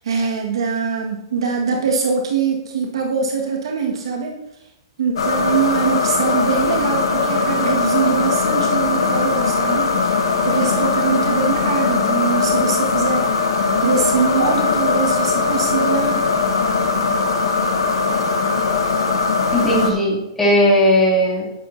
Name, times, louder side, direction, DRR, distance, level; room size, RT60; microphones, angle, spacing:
voice 1, 0.0-4.4 5.0-10.1 10.4-13.3 13.8-16.2, right 5 dB, 85° right, 0 dB, 1.7 m, -22 dB
sound 1, 5.2-19.9, left 4 dB, 90° left, 1.3 m, -20 dB
voice 2, 19.5-21.4, equal, 10° left, -6 dB, 2.7 m, -16 dB
11.0 x 9.0 x 2.7 m, 0.88 s
hypercardioid pair, 150°, 3 cm